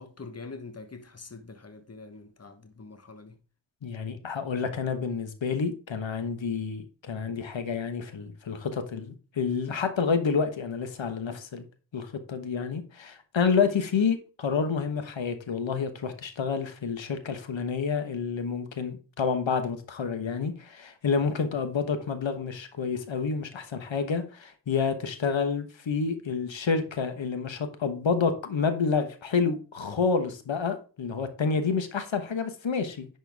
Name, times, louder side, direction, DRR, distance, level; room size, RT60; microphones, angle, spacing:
voice 1, 0.0-3.4, left 3 dB, 35° left, 1.2 m, -44 dB
voice 2, 3.8-11.6 11.9-33.1, left 5 dB, 85° left, 1.3 m, -29 dB
10.5 x 4.6 x 3.5 m
wide cardioid pair, 65°, 44 cm